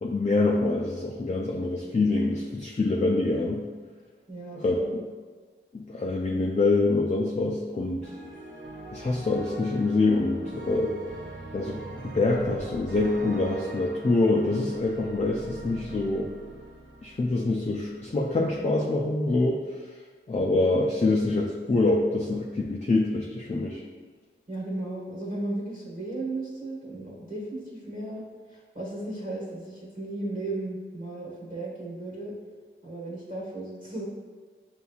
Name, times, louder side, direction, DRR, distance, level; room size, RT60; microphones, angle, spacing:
voice 1, 0.0-3.6 4.6-4.8 5.7-8.1 8.9-10.9 11.5-16.3 17.0-19.6 20.3-23.8, left 2 dB, 35° left, -1 dB, 0.4 m, -25 dB
voice 2, 4.3-4.9 24.5-28.2 28.5-32.3 32.8-34.0, right 2 dB, 40° right, -7 dB, 1.2 m, -35 dB
sound 1, 8.0-18.1, right 2 dB, 65° right, 0.6 m, -42 dB
6.7 x 2.6 x 2.3 m, 1.5 s
wide cardioid pair, 45°, 21 cm